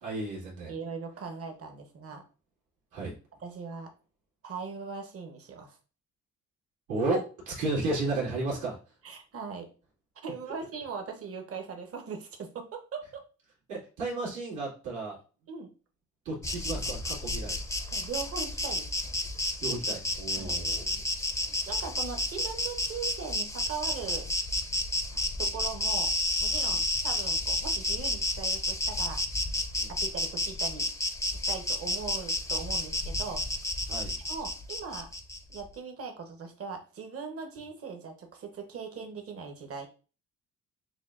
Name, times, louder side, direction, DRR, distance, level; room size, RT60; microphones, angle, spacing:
voice 1, 0.0-0.7 2.9-3.1 6.9-8.8 13.7-15.2 16.3-17.6 19.6-20.9 26.7-26.8 29.8-29.9 33.9-34.1, right 2 dB, 80° right, -5 dB, 2.1 m, -33 dB
voice 2, 0.7-2.2 3.4-3.9 4.4-5.8 9.0-9.7 10.2-13.2 15.5-15.7 17.9-19.1 20.3-20.6 21.4-24.3 25.4-26.1 26.4-29.2 29.9-30.9 31.3-33.4 34.3-35.1 35.5-39.9, right 5 dB, 50° right, 3 dB, 1.0 m, -40 dB
Insect, 16.4-35.6, left 1 dB, 10° left, 0.5 m, -31 dB
6.4 x 2.3 x 2.5 m, 0.36 s
cardioid pair, 90°, 30 cm